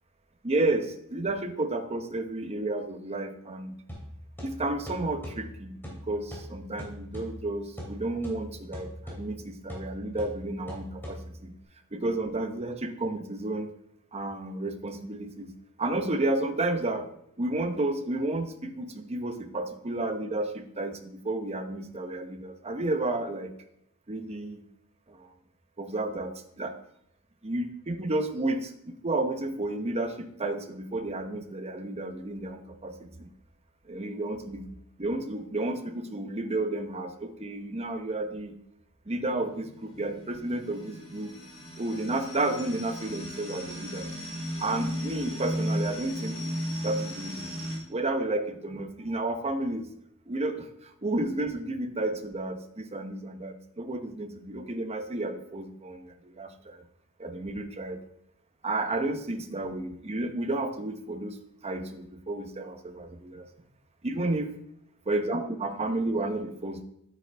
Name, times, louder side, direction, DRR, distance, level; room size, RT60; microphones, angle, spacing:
voice 1, 0.4-3.7 4.4-11.5 11.9-13.7 14.1-15.5 15.8-17.1 17.4-23.5 24.1-24.6 25.1-25.3 25.8-26.7 27.4-33.3 33.9-34.7 35.0-38.5 39.1-41.3 41.8-44.1 44.6-46.4 46.8-47.5 47.9-49.9 50.3-56.8 57.2-58.0 58.6-61.4 61.6-63.5 64.0-64.5 65.1-66.8, right 2 dB, 30° right, 7 dB, 0.9 m, -32 dB
sound 1, 3.9-11.6, equal, 10° left, 2.9 m, -42 dB
sound 2, 39.3-47.8, equal, 30° left, 3.0 m, -35 dB
9.3 x 8.8 x 3.5 m, 0.75 s
head